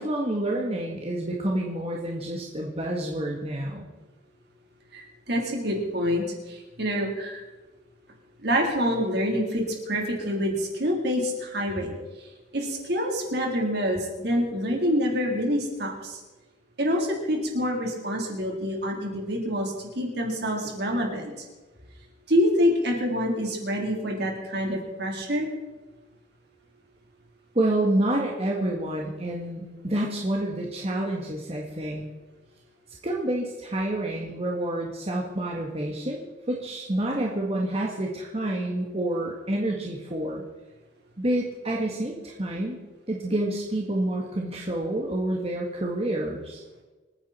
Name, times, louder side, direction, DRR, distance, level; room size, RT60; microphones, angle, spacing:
voice 1, 0.0-3.9 27.5-32.1 33.0-40.4 41.2-42.8 43.1-46.6, right 1 dB, 35° right, -2 dB, 1.9 m, -28 dB
voice 2, 4.9-7.4 8.4-12.0 12.5-16.2 16.8-21.3 22.3-25.5, equal, 60° right, 0 dB, 3.9 m, -26 dB
26.5 x 9.9 x 4.5 m, 1.2 s
head